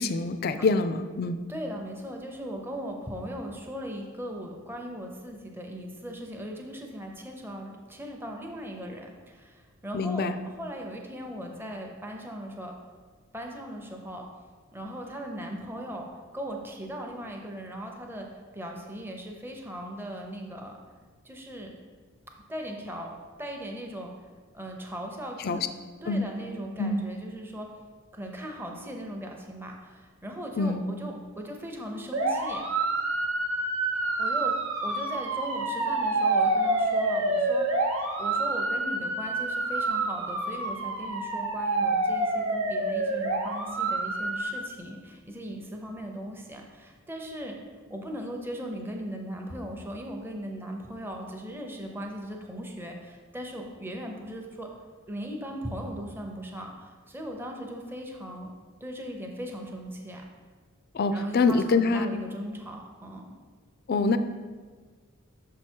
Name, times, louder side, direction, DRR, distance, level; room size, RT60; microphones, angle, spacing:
voice 1, 0.0-1.4 9.9-10.3 25.4-25.6 26.1-26.3 26.8-27.0 30.6-30.9 60.9-62.1 63.9-64.2, left 3 dB, 45° left, 10 dB, 0.3 m, -25 dB
voice 2, 1.5-12.7 13.3-14.3 14.7-16.0 16.3-18.3 18.5-20.8 21.2-21.7 22.5-24.1 24.5-25.6 26.0-27.7 28.1-32.7 34.0-34.5 34.8-37.9 38.2-47.6 47.9-54.7 55.1-58.5 58.8-60.2 61.1-63.3, equal, 10° right, 1 dB, 0.6 m, -38 dB
sound 1, 32.1-44.6, right 2 dB, 70° right, 0.8 m, -28 dB
6.4 x 4.6 x 4.5 m, 1.4 s
head